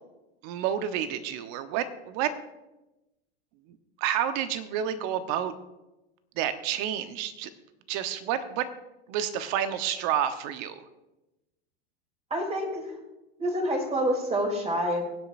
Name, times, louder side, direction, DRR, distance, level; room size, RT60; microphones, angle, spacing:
voice 1, 0.4-2.3 4.0-5.5 6.4-7.5 7.9-8.7 9.1-10.8, right 9 dB, 55° right, 11 dB, 1.1 m, -29 dB
voice 2, 12.3-12.8 13.4-15.0, equal, 20° right, 2 dB, 3.3 m, -27 dB
23.0 x 8.1 x 2.7 m, 1.0 s
hypercardioid pair, 95°, 32 cm